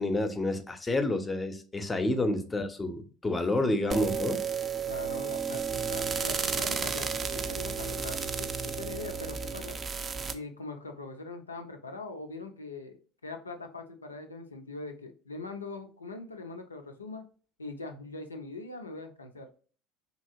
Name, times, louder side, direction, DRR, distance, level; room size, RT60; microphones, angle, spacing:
voice 1, 0.0-4.4, left 2 dB, 20° left, 8 dB, 0.6 m, -29 dB
sound 1, 3.9-10.3, right 6 dB, 30° right, 0.4 m, -32 dB
voice 2, 4.9-9.8 10.3-17.2 17.6-19.5, left 3 dB, 90° left, 5 dB, 0.4 m, -42 dB
2.8 x 2.8 x 2.6 m, 0.40 s
figure-of-eight pair, 70°, 0 cm